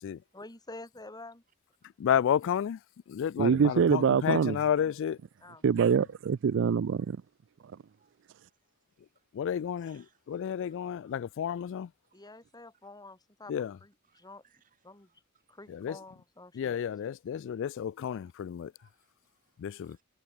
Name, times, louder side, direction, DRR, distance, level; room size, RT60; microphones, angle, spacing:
voice 1, 0.3-1.4 5.4-5.6 12.1-13.5 13.8-14.4 14.8-15.1 15.5-16.8, left 2 dB, 20° left, 3.2 m, -48 dB
voice 2, 2.0-2.8 3.1-5.2 9.3-11.9 13.5-13.8 15.7-16.0 16.5-18.7 19.6-20.0, left 8 dB, 60° left, 0.3 m, -31 dB
voice 3, 3.4-4.6 5.6-7.2, right 6 dB, 60° right, 0.4 m, -24 dB
voice 4, 7.8-9.3 9.8-10.4 11.0-11.2 12.0-12.3 14.1-15.6 16.7-16.8 17.3-17.4 18.8-20.0, right 7 dB, 40° right, 2.1 m, -71 dB
head